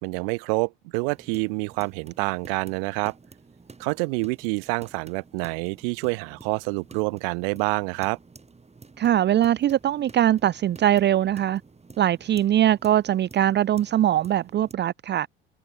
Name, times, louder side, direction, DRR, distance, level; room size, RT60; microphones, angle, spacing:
voice 1, 0.0-3.1 3.8-8.2, right 36 dB, 70° right, 0.9 m, -27 dB
sound 1, 1.0-14.7, right 4 dB, 20° right, 4.9 m, -50 dB
voice 2, 9.0-11.6 12.0-15.3, right 11 dB, 35° right, 0.6 m, -21 dB
hypercardioid pair, 65°, 30 cm